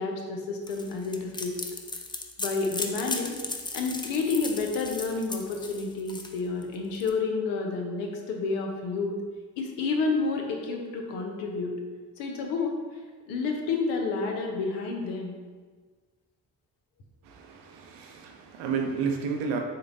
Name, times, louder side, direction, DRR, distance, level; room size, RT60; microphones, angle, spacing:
voice 1, 0.0-1.5 2.4-3.4 3.7-9.2 9.6-11.8 12.2-12.7 13.3-15.4, left 4 dB, 85° left, 2 dB, 0.6 m, -30 dB
sound 1, 0.7-7.1, left 3 dB, 10° left, 0.3 m, -36 dB
voice 2, 17.2-19.6, right 5 dB, 80° right, 2 dB, 0.6 m, -31 dB
3.9 x 2.1 x 4.0 m, 1.5 s
hypercardioid pair, 45°, 41 cm